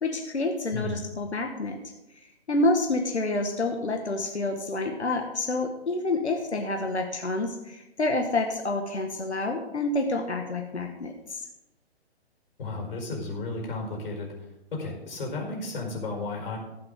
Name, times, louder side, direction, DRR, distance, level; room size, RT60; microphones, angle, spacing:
voice 1, 0.0-11.5, left 2 dB, 80° left, 3 dB, 1.7 m, -28 dB
voice 2, 12.6-14.3 14.7-16.6, left 3 dB, 55° left, 1 dB, 5.0 m, -33 dB
19.0 x 7.6 x 3.8 m, 0.92 s
figure-of-eight pair, 140°, 33 cm